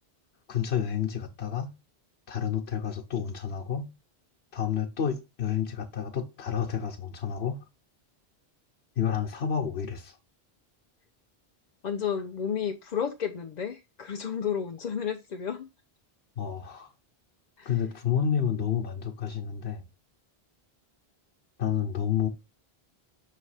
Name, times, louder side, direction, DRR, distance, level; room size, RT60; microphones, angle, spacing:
voice 1, 0.5-1.7 2.3-3.9 4.5-7.6 9.0-10.2 16.4-16.9 17.6-19.8 21.6-22.3, left 8 dB, 90° left, 1.1 m, -30 dB
voice 2, 11.8-15.7 17.6-17.8, left 7 dB, 50° left, 0.6 m, -32 dB
6.6 x 3.2 x 4.8 m
omnidirectional pair, 1.0 m